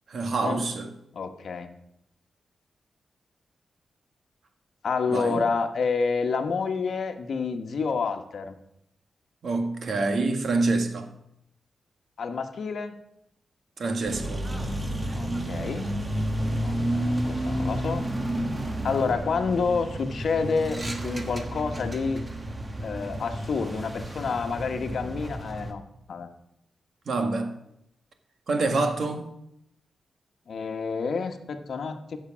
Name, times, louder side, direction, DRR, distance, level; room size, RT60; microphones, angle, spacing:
voice 1, 0.1-0.9 5.1-5.4 9.4-11.1 13.8-14.4 27.1-27.6 28.5-29.3, right 3 dB, 60° right, 1.6 m, -26 dB
voice 2, 1.1-1.7 4.8-8.6 12.2-12.9 15.1-15.9 16.5-18.1 18.8-22.2 22.8-25.8 26.1-26.3 30.5-32.2, left 5 dB, 65° left, 1.2 m, -29 dB
sound 1, 14.1-25.7, right 1 dB, 25° right, 1.3 m, -31 dB
15.0 x 6.7 x 6.2 m
cardioid pair, 90°, 0 cm